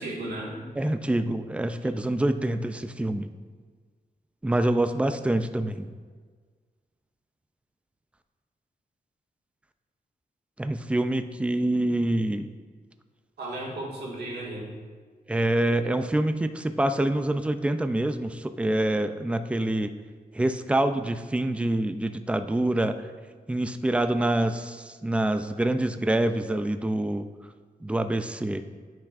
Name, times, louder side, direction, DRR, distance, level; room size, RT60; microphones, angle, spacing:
voice 1, 0.0-0.7 13.4-14.7, right 1 dB, 90° right, -4 dB, 1.8 m, -35 dB
voice 2, 0.8-3.3 4.4-5.9 10.6-12.5 15.3-19.9 20.3-23.0 23.5-27.3 27.8-28.6, right 1 dB, 5° right, 9 dB, 0.3 m, -26 dB
10.5 x 6.0 x 2.5 m, 1.6 s
wide cardioid pair, 120°, 16 cm